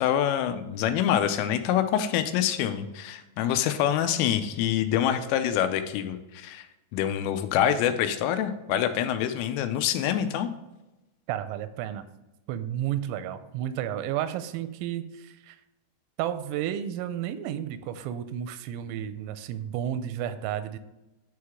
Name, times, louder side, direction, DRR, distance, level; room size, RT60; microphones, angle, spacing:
voice 1, 0.0-6.7 6.9-10.5, left 10 dB, 85° left, 9 dB, 3.2 m, -26 dB
voice 2, 11.3-12.1 12.5-15.6 16.2-20.8, right 10 dB, 90° right, 11 dB, 3.2 m, -32 dB
10.0 x 4.7 x 3.5 m, 1.0 s
omnidirectional pair, 5.8 m